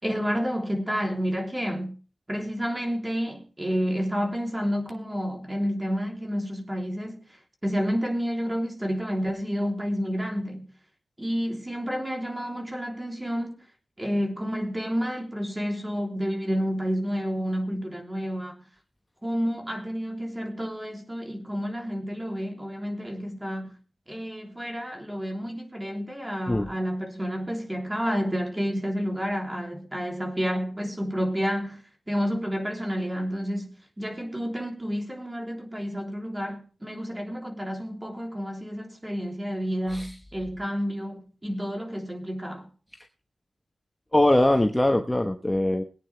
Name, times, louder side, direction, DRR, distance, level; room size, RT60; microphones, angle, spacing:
voice 1, 0.0-1.9 2.3-7.2 7.6-10.6 11.2-13.5 14.0-18.6 19.2-23.7 24.1-42.7, equal, 15° right, 3.3 m, -30 dB
voice 2, 44.1-45.8, left 1 dB, 10° left, 1.2 m, -22 dB
22.5 x 9.1 x 3.3 m
wide cardioid pair, 90°, 0 cm